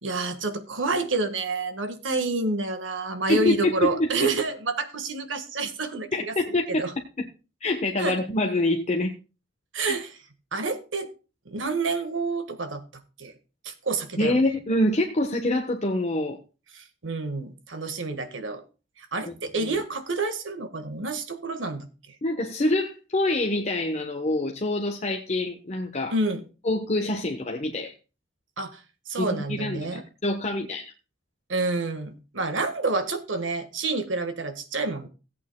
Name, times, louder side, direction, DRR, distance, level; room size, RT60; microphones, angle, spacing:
voice 1, 0.0-6.3 6.7-6.9 8.0-8.2 9.7-10.1 10.5-11.1 11.4-12.8 13.2-13.3 13.6-14.4 16.7-18.6 19.0-21.9 26.1-26.4 28.6-28.8 29.1-30.0 31.5-35.1, right 3 dB, 85° right, 9 dB, 1.6 m, -28 dB
voice 2, 3.3-4.3 6.1-6.8 7.2-7.3 7.6-9.1 9.8-9.9 14.2-16.4 19.3-19.7 22.2-26.1 26.6-27.9 29.2-30.9, left 1 dB, 35° left, 2 dB, 1.1 m, -26 dB
17.5 x 8.6 x 2.2 m, 0.32 s
head